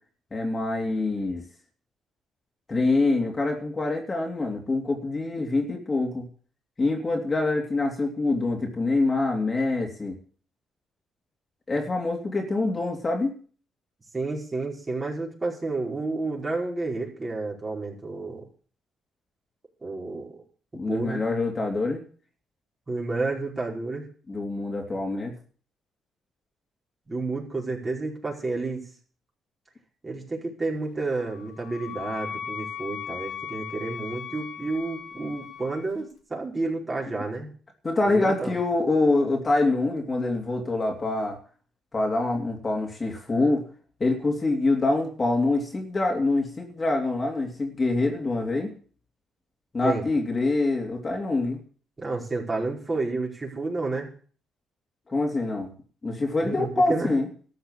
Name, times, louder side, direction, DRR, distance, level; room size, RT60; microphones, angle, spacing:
voice 1, 0.3-1.4 2.7-6.3 6.8-10.2 11.7-13.3 20.7-22.0 24.3-25.3 37.8-41.4 41.9-43.7 44.0-48.7 49.7-51.6 55.1-55.7 56.0-57.3, left 2 dB, 30° left, 1 dB, 3.2 m, -25 dB
voice 2, 14.1-18.4 19.8-20.4 20.9-21.2 22.9-24.1 27.1-28.8 30.0-37.5 38.0-38.5 49.8-50.1 52.0-54.1 56.4-57.1, right 3 dB, 25° right, -1 dB, 5.0 m, -30 dB
Wind instrument woodwind instrument, 31.1-35.9, left 8 dB, 60° left, 2.1 m, -38 dB
13.5 x 6.3 x 9.9 m, 0.43 s
cardioid pair, 90°, 0 cm